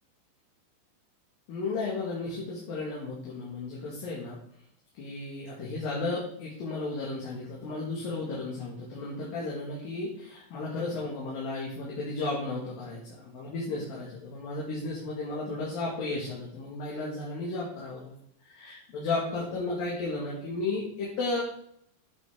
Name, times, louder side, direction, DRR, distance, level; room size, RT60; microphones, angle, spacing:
voice 1, 1.5-4.4 5.0-18.1 18.5-21.4, left 3 dB, 60° left, -5 dB, 3.3 m, -34 dB
8.7 x 7.9 x 3.7 m, 0.68 s
omnidirectional pair, 5.3 m